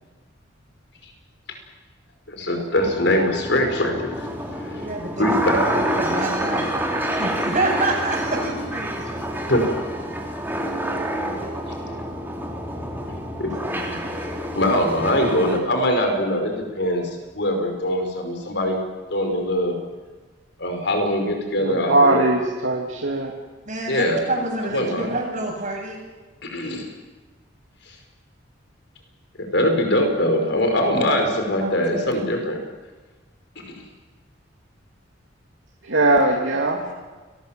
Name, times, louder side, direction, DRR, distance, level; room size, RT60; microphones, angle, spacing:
voice 1, 2.3-4.3 4.5-4.9 5.2-5.8 9.5-9.6 13.4-13.7 14.6-18.8 19.1-19.8 20.6-22.2 23.9-24.2 24.7-25.1 26.4-26.9 27.9-28.0 29.4-32.6 33.7-33.8, left 1 dB, 65° left, 4 dB, 5.6 m, -22 dB
sound 1, 2.8-15.6, right 1 dB, 10° right, 3.7 m, -28 dB
voice 2, 4.7-6.7 7.2-9.2 11.3-11.5 13.5-14.0 23.7-26.0 31.6-32.1 36.8-36.9, right 2 dB, 45° right, -8 dB, 6.6 m, -28 dB
voice 3, 21.6-23.3 35.8-36.8, right 2 dB, 85° right, 0 dB, 2.7 m, -20 dB
29.0 x 21.0 x 7.7 m, 1.3 s
head